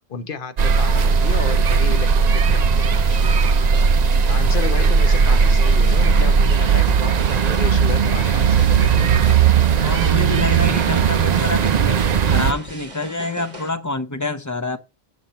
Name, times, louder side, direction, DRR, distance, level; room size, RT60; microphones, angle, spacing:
voice 1, 0.1-3.0 4.3-9.4, left 5 dB, 55° left, 1.1 m, -32 dB
sound 1, 0.6-12.5, right 6 dB, 50° right, 0.6 m, -17 dB
sound 2, 2.7-13.7, equal, 30° right, 2.1 m, -39 dB
voice 2, 9.8-14.8, left 3 dB, 20° left, 0.7 m, -27 dB
7.4 x 4.4 x 6.6 m
omnidirectional pair, 1.1 m